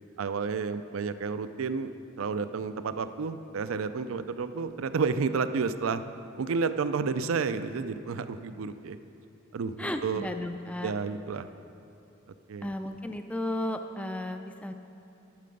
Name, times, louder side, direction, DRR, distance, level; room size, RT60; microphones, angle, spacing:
voice 1, 0.2-6.0 6.4-9.0 9.5-10.3 10.8-11.5 12.5-12.7, right 5 dB, 80° right, 11 dB, 0.4 m, -31 dB
voice 2, 9.8-10.9 12.6-14.7, left 1 dB, 5° left, 6 dB, 0.3 m, -34 dB
12.0 x 6.8 x 5.3 m, 2.8 s
head